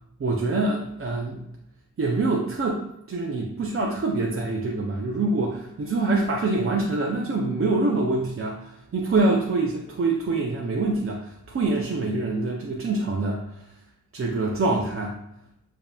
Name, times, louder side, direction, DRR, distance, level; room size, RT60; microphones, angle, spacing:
voice 1, 0.2-1.4 2.0-13.7 14.1-15.2, right 3 dB, 40° right, -1 dB, 0.5 m, -25 dB
7.0 x 2.8 x 2.2 m, 0.81 s
wide cardioid pair, 110°, 35 cm